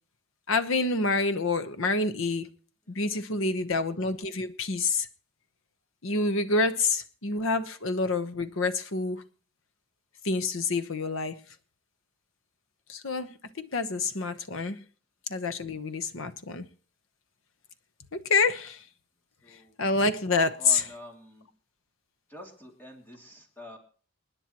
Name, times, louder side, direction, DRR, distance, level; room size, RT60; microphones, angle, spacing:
voice 1, 0.5-2.5 2.9-5.1 6.0-9.2 10.2-11.4 12.9-14.8 15.3-16.7 18.1-18.8 19.8-20.8, left 3 dB, 70° left, 1.0 m, -27 dB
voice 2, 2.9-3.2 19.4-19.8 20.6-21.5 22.3-23.8, left 1 dB, 10° left, 2.6 m, -47 dB
28.5 x 10.0 x 3.0 m
head